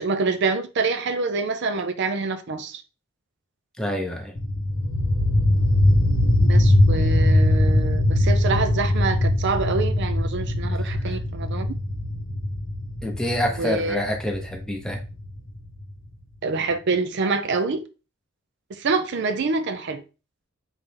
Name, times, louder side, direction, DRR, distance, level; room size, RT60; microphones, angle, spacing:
voice 1, 0.0-2.8 6.4-11.7 13.6-14.0 16.4-17.8 18.8-20.0, right 4 dB, 55° right, 0.5 m, -26 dB
voice 2, 3.8-4.4 10.7-11.2 13.0-15.0, equal, 5° left, 0.7 m, -27 dB
sound 1, 4.4-15.9, left 1 dB, 65° left, 0.8 m, -21 dB
4.0 x 3.3 x 3.3 m
head